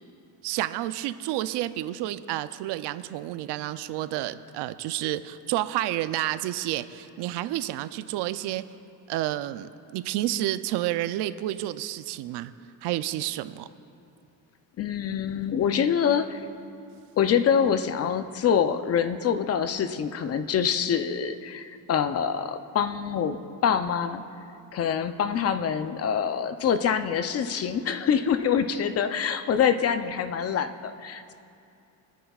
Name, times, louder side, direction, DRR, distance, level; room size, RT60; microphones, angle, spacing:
voice 1, 0.4-8.6 9.1-12.5 12.8-13.7, right 14 dB, 70° right, 13 dB, 0.6 m, -30 dB
voice 2, 14.8-16.5 17.2-24.2 24.7-31.3, left 7 dB, 35° left, 10 dB, 0.5 m, -25 dB
25.5 x 9.3 x 2.4 m, 2.6 s
cardioid pair, 130°, 43 cm